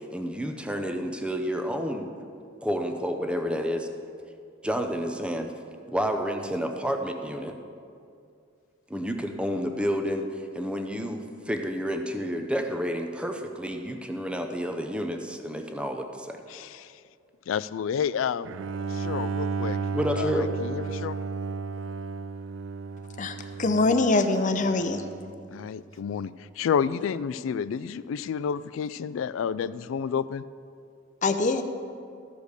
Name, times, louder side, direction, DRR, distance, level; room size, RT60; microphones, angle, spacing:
voice 1, 0.0-2.1 2.6-3.9 4.6-5.5 5.9-7.6 8.9-16.4 19.9-20.5, equal, 5° right, 5 dB, 0.7 m, -30 dB
voice 2, 16.5-16.9 17.5-18.5 18.9-19.8 20.1-21.2 25.5-30.4, left 7 dB, 85° left, 17 dB, 0.3 m, -30 dB
Bowed string instrument, 18.4-25.5, right 5 dB, 70° right, 0.4 m, -33 dB
voice 3, 23.2-25.0 31.2-31.6, left 3 dB, 40° left, 8 dB, 0.6 m, -24 dB
14.0 x 5.2 x 6.5 m, 2.4 s
head